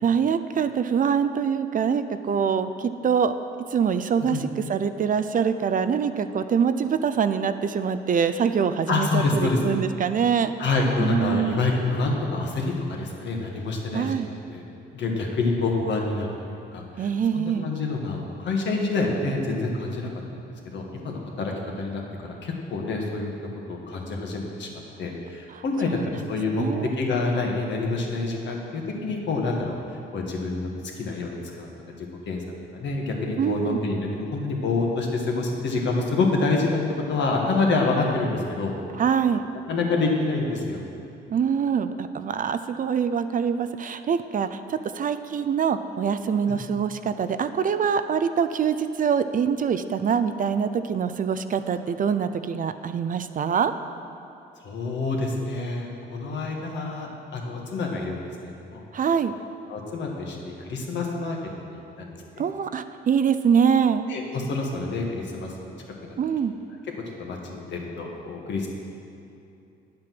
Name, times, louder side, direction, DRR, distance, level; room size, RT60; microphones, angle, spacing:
voice 1, 0.0-3.3 3.7-10.5 11.0-11.6 13.9-14.3 17.0-17.7 25.5-26.3 26.5-26.9 33.4-33.8 38.9-39.4 41.3-53.7 58.9-59.3 62.4-64.0 66.2-66.5, right 7 dB, 45° right, 10 dB, 0.5 m, -24 dB
voice 2, 8.9-9.6 10.6-14.6 14.9-16.3 16.7-23.3 23.7-24.7 25.0-26.7 27.0-29.8 30.1-32.4 32.7-36.8 37.1-38.7 39.7-40.8 46.5-46.6 54.6-58.8 59.7-61.4 61.6-62.2 64.1-65.7 66.0-66.2 67.2-68.7, left 3 dB, 65° left, 0 dB, 1.8 m, -27 dB
9.5 x 7.5 x 6.0 m, 2.7 s
cardioid pair, 90°, 20 cm